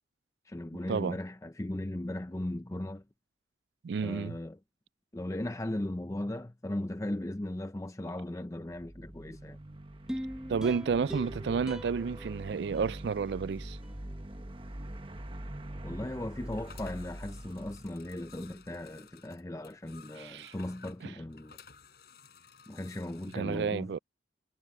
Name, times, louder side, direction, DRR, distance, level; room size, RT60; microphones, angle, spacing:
voice 1, 0.4-3.0 4.0-4.6 5.1-9.6 15.8-21.6 22.7-23.9, left 1 dB, 15° left, 0.5 m, -37 dB
voice 2, 3.8-4.4 10.5-13.8 20.2-20.5 23.3-24.0, right 5 dB, 70° right, 0.4 m, -31 dB
sound 1, 8.6-18.8, right 1 dB, 30° right, 1.2 m, -44 dB
sound 2, 10.1-13.4 13.8-13.9, equal, 5° right, 1.1 m, -42 dB
sound 3, 16.5-23.4, left 6 dB, 60° left, 4.9 m, -55 dB
head